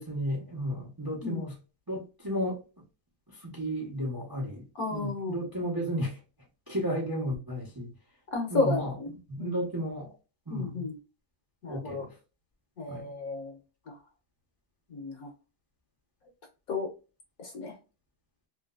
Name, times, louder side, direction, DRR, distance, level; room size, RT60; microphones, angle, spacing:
voice 1, 0.0-1.6 1.9-2.6 3.3-4.6 4.9-6.2 6.7-7.9 8.5-9.0 9.3-10.1 10.5-10.9 11.7-12.1 12.9-13.0, equal, 20° right, 0.6 m, -33 dB
voice 2, 4.8-5.4 8.3-9.1 9.4-9.5 10.5-11.0 11.6-12.0 12.8-13.6 13.9-14.0 14.9-15.3 16.7-16.9 17.4-17.7, left 3 dB, 55° left, 1.2 m, -32 dB
3.1 x 2.9 x 2.3 m
omnidirectional pair, 2.1 m